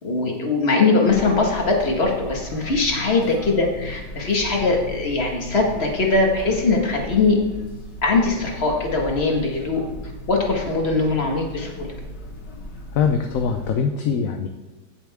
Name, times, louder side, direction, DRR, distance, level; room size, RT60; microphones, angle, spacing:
voice 1, 0.0-7.4 8.0-9.8 10.3-11.9, left 3 dB, 35° left, 1 dB, 1.9 m, -21 dB
sound 1, 1.0-13.7, left 1 dB, 80° left, 2.4 m, -36 dB
voice 2, 12.9-14.5, left 6 dB, 60° left, 5 dB, 1.0 m, -22 dB
15.5 x 7.0 x 3.6 m, 1.1 s
omnidirectional pair, 1.9 m